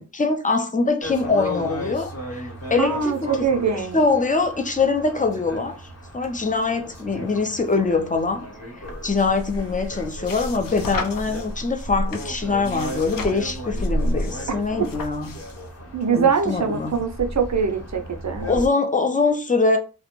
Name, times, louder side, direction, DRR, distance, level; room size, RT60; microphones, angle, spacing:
voice 1, 0.0-3.4 3.6-5.8 6.1-8.5 8.8-15.4 16.1-16.9 18.5-19.8, left 3 dB, 20° left, 0.5 m, -23 dB
sound 1, 1.0-18.7, equal, 40° left, 1.0 m, -36 dB
voice 2, 2.8-4.0 14.8-14.9 15.9-18.5, right 6 dB, 50° right, 0.5 m, -23 dB
sound 2, 8.8-15.7, left 1 dB, 65° left, 0.6 m, -31 dB
2.4 x 2.0 x 2.9 m
wide cardioid pair, 40°, 36 cm